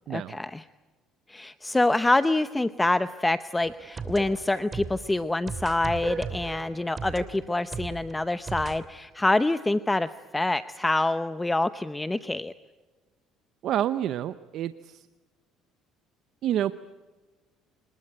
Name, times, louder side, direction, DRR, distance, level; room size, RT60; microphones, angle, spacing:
voice 1, 0.1-0.6 1.3-12.5, left 2 dB, 15° left, 13 dB, 0.8 m, -26 dB
sound 1, 3.6-8.8, right 5 dB, 35° right, 3.0 m, -37 dB
voice 2, 13.6-15.1 16.4-16.7, right 11 dB, 65° right, 13 dB, 0.8 m, -28 dB
26.0 x 20.5 x 8.9 m, 1.3 s
supercardioid pair, 90°, 0 cm